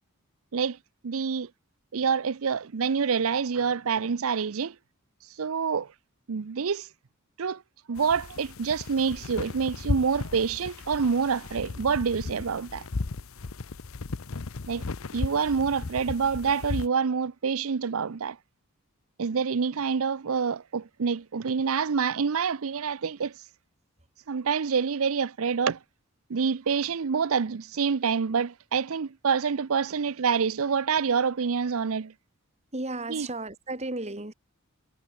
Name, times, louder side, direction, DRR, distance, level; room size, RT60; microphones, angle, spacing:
voice 1, 1.0-1.5 1.9-4.8 5.4-5.9 6.3-6.9 7.4-7.6 7.9-12.9 14.7-14.9 15.1-18.4 19.2-23.3 24.3-25.8 26.3-32.1 33.1-33.3, right 6 dB, 70° right, 0.6 m, -27 dB
sound 1, 8.0-16.9, left 3 dB, 65° left, 0.8 m, -35 dB
voice 2, 32.7-34.3, right 2 dB, 30° right, 2.1 m, -34 dB
head